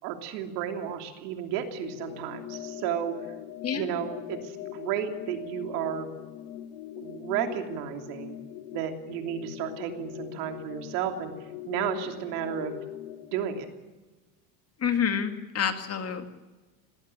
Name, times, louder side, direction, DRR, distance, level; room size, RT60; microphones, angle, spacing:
voice 1, 0.0-3.3 3.7-6.1 7.0-8.4 8.7-11.3 11.6-12.8 13.3-13.7, right 9 dB, 75° right, 5 dB, 3.2 m, -33 dB
sound 1, 1.8-13.7, left 11 dB, 65° left, 1.4 m, -41 dB
voice 2, 3.6-4.0 14.8-16.3, left 7 dB, 30° left, 7 dB, 2.3 m, -28 dB
19.5 x 17.5 x 8.8 m, 1.2 s
supercardioid pair, 120°, 46 cm